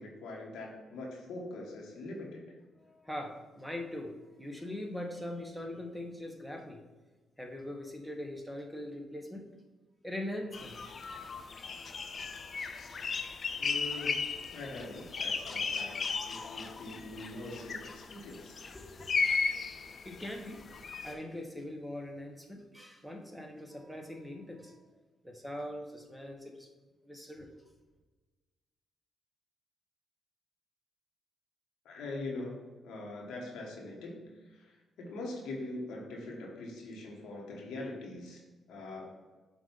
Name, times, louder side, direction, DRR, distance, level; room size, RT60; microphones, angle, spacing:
voice 1, 0.0-2.4 13.6-16.0 16.3-18.6 31.8-34.3 34.6-34.7 35.0-38.4 38.7-39.1, left 2 dB, 80° left, -1 dB, 1.3 m, -42 dB
voice 2, 2.8-6.8 7.4-9.4 10.0-10.9 18.1-18.3 18.7-19.1 20.0-20.6 20.9-24.9 25.2-26.7 27.0-27.7, left 1 dB, 5° left, 2 dB, 1.2 m, -42 dB
sound 1, 10.5-21.1, left 5 dB, 50° left, 0.5 m, -36 dB
7.2 x 2.6 x 5.4 m, 1.2 s
supercardioid pair, 55°, 0 cm